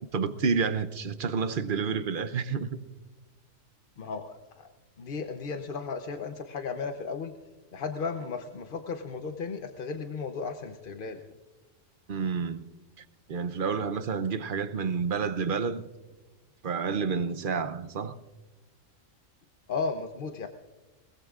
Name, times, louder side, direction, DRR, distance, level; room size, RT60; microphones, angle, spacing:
voice 1, 0.1-2.8 12.1-12.6 13.3-15.8 16.6-18.1, right 5 dB, 50° right, 0.7 m, -29 dB
voice 2, 4.0-4.7 5.0-7.3 7.7-11.2 19.7-20.5, left 4 dB, 45° left, 0.8 m, -35 dB
21.5 x 20.0 x 2.4 m
omnidirectional pair, 1.4 m